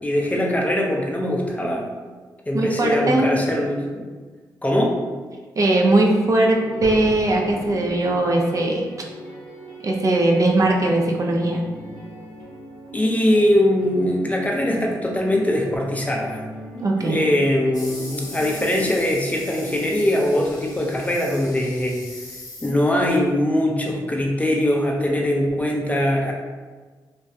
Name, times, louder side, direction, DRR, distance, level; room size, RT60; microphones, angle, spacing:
voice 1, 0.0-1.9 2.5-4.1 4.6-5.0 12.9-16.4 17.0-22.0 22.6-26.3, left 1 dB, 15° left, -1 dB, 0.5 m, -21 dB
voice 2, 2.5-3.4 5.6-8.8 9.8-11.6 16.8-17.2, right 2 dB, 40° right, 0 dB, 0.4 m, -19 dB
sound 1, 5.9-18.9, equal, 70° right, 0.7 m, -39 dB
Explosion, 6.8-8.4, left 1 dB, 90° left, 0.4 m, -38 dB
sound 2, 17.7-23.1, left 2 dB, 50° left, 0.7 m, -40 dB
2.3 x 2.1 x 2.6 m, 1.4 s
supercardioid pair, 45°, 8 cm